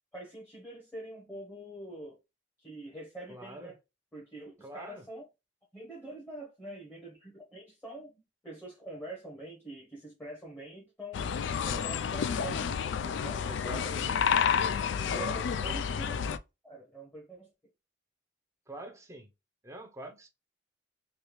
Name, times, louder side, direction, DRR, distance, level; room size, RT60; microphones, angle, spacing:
voice 1, 0.1-2.2 2.6-3.8 4.1-5.2 5.7-11.3 11.6-12.7 13.2-13.9 15.0-16.3 16.6-17.5, right 1 dB, 10° left, 0.9 m, -45 dB
voice 2, 3.3-3.8 4.6-5.1 11.6-11.9 13.4-14.1 15.1-15.8 18.7-19.3 19.6-20.3, right 2 dB, 15° right, 0.6 m, -44 dB
sound 1, 11.1-16.4, left 7 dB, 70° left, 0.3 m, -30 dB
3.2 x 2.9 x 2.9 m
head